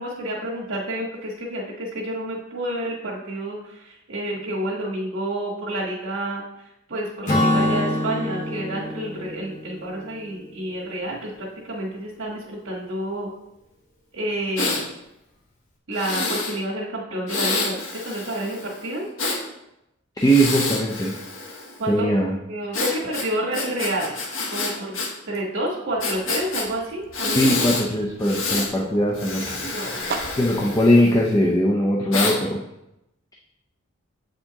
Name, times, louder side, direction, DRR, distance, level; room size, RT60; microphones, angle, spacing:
voice 1, 0.0-13.3 14.1-14.8 15.9-19.1 21.8-22.1 22.5-24.2 24.5-25.0 25.3-27.4 28.3-28.5 29.5-30.2, right 1 dB, 80° right, -6 dB, 1.5 m, -29 dB
Acoustic guitar / Strum, 7.3-10.9, left 1 dB, 40° left, 1.2 m, -25 dB
Breathing, 14.6-14.8 15.9-16.6 17.3-19.4 20.2-21.8 22.7-25.1 25.4-25.5 26.0-26.7 27.1-27.9 28.2-28.7 29.1-31.3 32.1-32.4, left 3 dB, 75° left, 1.0 m, -28 dB
voice 2, 20.2-21.1 21.9-22.3 27.4-29.7 30.4-32.6, equal, 20° left, -1 dB, 0.5 m, -20 dB
sound 1, 25.9-31.2, right 3 dB, 50° right, 0.5 m, -38 dB
7.5 x 4.4 x 2.9 m, 0.87 s
head